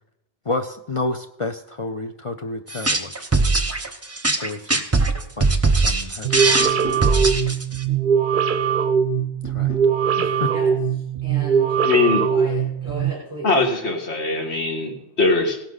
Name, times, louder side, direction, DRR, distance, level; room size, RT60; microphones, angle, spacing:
voice 1, 0.4-3.3 4.4-4.8 5.4-6.9 9.4-9.8 10.2-10.5, left 2 dB, 40° left, 7 dB, 0.5 m, -30 dB
sound 1, 2.7-7.8, right 3 dB, 15° right, 0.8 m, -20 dB
sound 2, 6.2-13.1, right 7 dB, 55° right, 0.7 m, -21 dB
sound 3, 6.3-7.1 9.4-9.9, equal, 90° left, 3.0 m, -34 dB
voice 2, 10.4-11.8 12.2-13.5, right 1 dB, 15° left, -5 dB, 4.1 m, -36 dB
voice 3, 11.8-12.2 13.4-15.6, left 3 dB, 70° left, 2 dB, 2.1 m, -21 dB
17.0 x 11.0 x 4.0 m, 0.87 s
omnidirectional pair, 1.2 m